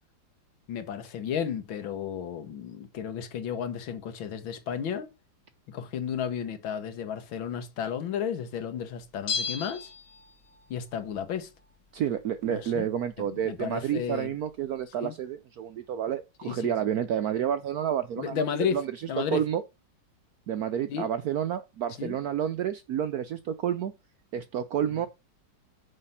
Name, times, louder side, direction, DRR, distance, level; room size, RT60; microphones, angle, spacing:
voice 1, 0.7-5.1 5.7-9.9 10.7-11.5 12.5-12.8 13.2-14.3 15.0-15.1 16.4-16.7 18.2-18.8 19.1-19.4 20.9-21.1 22.0-22.2, left 8 dB, 80° left, 1.9 m, -33 dB
Bell, 9.3-10.7 10.9-11.0, left 5 dB, 45° left, 1.3 m, -34 dB
voice 2, 11.9-19.6 20.5-23.9 24.3-25.1, right 9 dB, 70° right, 0.9 m, -30 dB
6.5 x 5.6 x 5.6 m
omnidirectional pair, 2.2 m